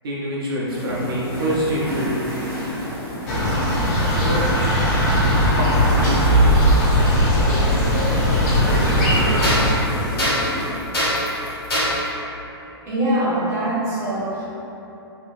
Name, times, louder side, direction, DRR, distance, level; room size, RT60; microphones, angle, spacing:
voice 1, 0.0-2.2 4.0-4.6 5.5-6.6 7.5-8.1 8.6-9.6, equal, 60° right, -6 dB, 0.5 m, -27 dB
sound 1, 0.7-10.7, equal, 15° left, 1.1 m, -30 dB
sound 2, 2.8-3.5 4.8-4.9 7.0-7.1 7.8-7.9 9.4-12.1, equal, 70° left, 1.1 m, -24 dB
sound 3, 3.3-9.7, equal, 40° left, 0.6 m, -18 dB
voice 2, 12.8-14.4, right 1 dB, 20° right, -8 dB, 0.8 m, -23 dB
2.7 x 2.6 x 2.5 m, 3.0 s
figure-of-eight pair, 115°, 14 cm